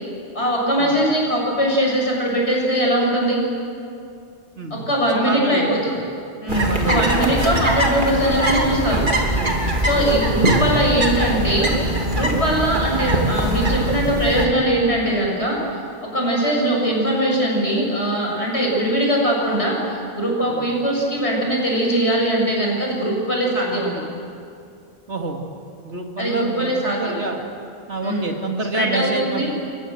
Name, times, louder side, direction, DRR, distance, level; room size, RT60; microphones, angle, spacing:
voice 1, 0.3-3.4 4.7-5.9 6.4-9.1 9.8-11.7 12.1-15.6 16.0-24.0 26.2-27.2 28.0-28.3 28.7-29.5, right 1 dB, 75° left, -1 dB, 7.5 m, -21 dB
voice 2, 4.6-6.0 6.6-7.4 9.9-10.3 20.5-20.7 25.1-25.4 25.8-27.4 27.9-29.5, right 3 dB, 85° right, 2 dB, 2.9 m, -28 dB
sound 1, 6.5-14.5, right 1 dB, 45° right, 3.2 m, -21 dB
29.0 x 24.5 x 8.0 m, 2.6 s
omnidirectional pair, 1.1 m